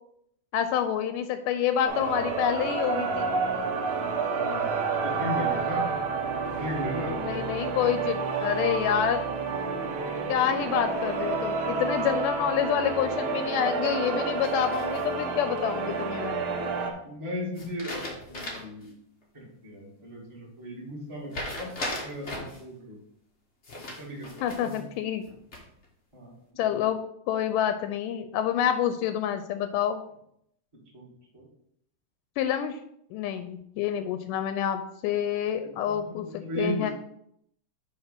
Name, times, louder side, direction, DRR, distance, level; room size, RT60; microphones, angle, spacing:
voice 1, 0.5-3.3 7.2-9.2 10.3-16.4 24.4-25.2 26.6-30.0 32.4-32.8 33.1-36.9, left 9 dB, 85° left, 9 dB, 2.1 m, -28 dB
sound 1, 1.9-16.9, right 4 dB, 80° right, 1.2 m, -29 dB
voice 2, 4.3-5.8 6.5-7.2 17.0-18.0 18.3-18.9 19.3-21.7 22.0-23.0 23.8-24.8 26.1-26.3 30.9-31.0 31.3-31.4 35.9-36.9, equal, 10° right, -5 dB, 1.8 m, -36 dB
sound 2, 14.4-15.4 17.6-18.8 19.2-19.3 21.3-22.6 23.6-24.8 25.3-25.9, left 1 dB, 65° left, 0.6 m, -37 dB
6.6 x 4.3 x 5.8 m, 0.71 s
omnidirectional pair, 3.7 m